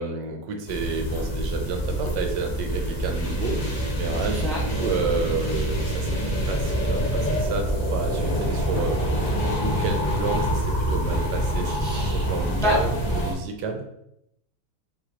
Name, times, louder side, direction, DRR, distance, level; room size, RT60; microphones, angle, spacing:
voice 1, 0.0-6.2 6.5-11.7 12.0-13.8, right 4 dB, 80° right, 4 dB, 1.3 m, -30 dB
sound 1, 0.7-13.3, equal, 35° left, 0.7 m, -26 dB
voice 2, 4.3-4.6 11.6-12.2 12.6-12.8, equal, 5° left, -5 dB, 0.8 m, -27 dB
sound 2, 8.7-10.2 10.6-10.7, left 2 dB, 85° left, 0.3 m, -37 dB
5.2 x 3.1 x 2.8 m, 0.77 s
omnidirectional pair, 1.8 m